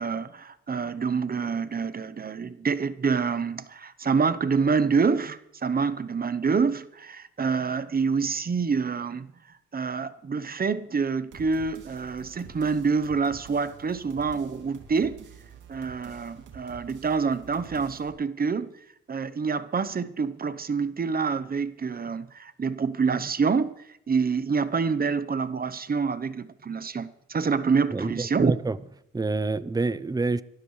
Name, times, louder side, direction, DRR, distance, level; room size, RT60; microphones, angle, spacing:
voice 1, 0.0-9.3 9.7-15.2 15.7-18.7 19.1-28.5, right 5 dB, 30° right, 0.9 m, -27 dB
sound 1, 11.3-18.1, right 6 dB, 80° right, 2.8 m, -48 dB
voice 2, 27.9-28.8 29.1-30.4, right 3 dB, 15° right, 0.6 m, -27 dB
24.5 x 12.5 x 3.3 m
cardioid pair, 90°, 30 cm